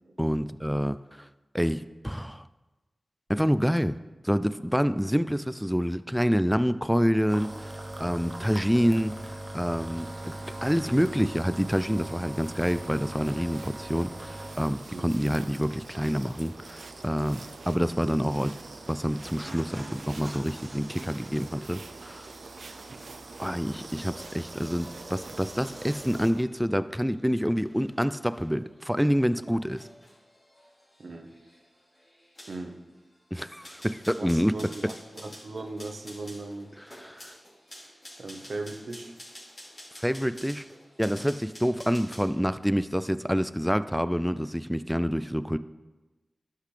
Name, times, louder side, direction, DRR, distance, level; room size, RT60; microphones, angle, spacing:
voice 1, 0.2-1.3 1.5-2.4 3.3-4.0 4.2-10.1 10.6-18.5 18.9-22.3 23.4-29.9 33.3-34.5 37.0-37.3 40.0-40.7 41.0-45.6, equal, ahead, 13 dB, 0.3 m, -27 dB
sound 1, 7.3-26.3, right 1 dB, 45° right, 0.9 m, -43 dB
sound 2, 10.0-26.4, right 4 dB, 85° right, 0.4 m, -47 dB
sound 3, 23.2-42.4 42.7-43.0, equal, 45° left, 2.9 m, -51 dB
voice 2, 31.0-31.4 32.5-32.8 34.2-36.8 38.2-39.1, right 2 dB, 70° right, 5 dB, 0.8 m, -38 dB
11.5 x 5.8 x 3.3 m, 1.2 s
wide cardioid pair, 55°, 0 cm